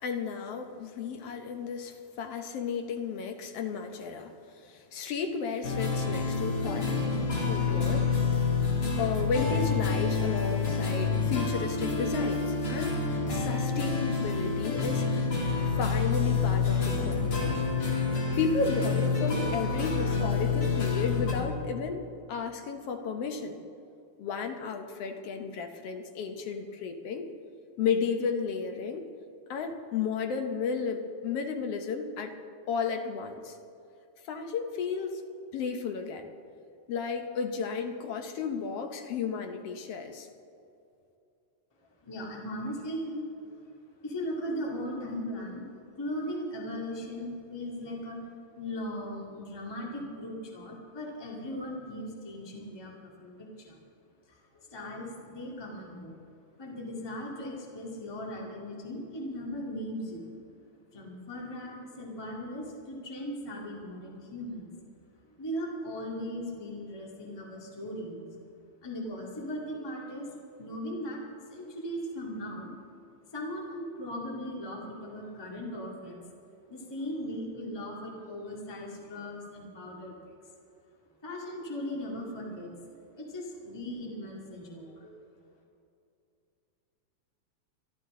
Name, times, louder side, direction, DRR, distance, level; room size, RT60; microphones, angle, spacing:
voice 1, 0.0-6.9 7.4-8.2 9.0-13.0 13.3-15.3 15.7-17.7 18.4-22.0 22.3-23.6 24.2-27.3 27.8-29.0 29.5-32.4 32.7-33.6 34.2-35.2 35.5-36.3 36.9-40.3, left 5 dB, 65° left, 5 dB, 1.7 m, -33 dB
sound 1, 5.6-21.3, left 4 dB, 50° left, 3.1 m, -28 dB
voice 2, 42.0-43.5 44.0-45.7 46.0-48.2 48.6-53.8 54.3-56.2 56.6-60.3 60.9-64.7 65.2-68.4 68.8-72.7 73.3-76.2 76.7-80.3 81.2-82.7 83.2-85.1, equal, 10° left, -3 dB, 1.6 m, -38 dB
24.5 x 12.0 x 3.7 m, 2.6 s
omnidirectional pair, 3.3 m